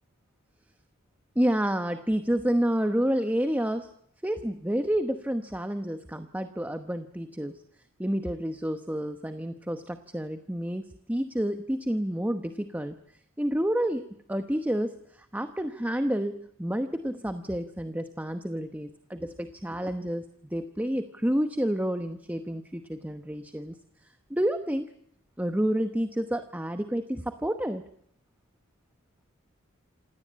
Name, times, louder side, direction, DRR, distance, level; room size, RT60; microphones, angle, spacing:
voice 1, 1.4-3.9 4.2-7.6 8.0-12.9 13.4-20.3 20.5-23.7 24.3-24.9 25.4-27.8, equal, 10° right, 8 dB, 0.9 m, -29 dB
27.5 x 17.5 x 8.7 m, 0.69 s
head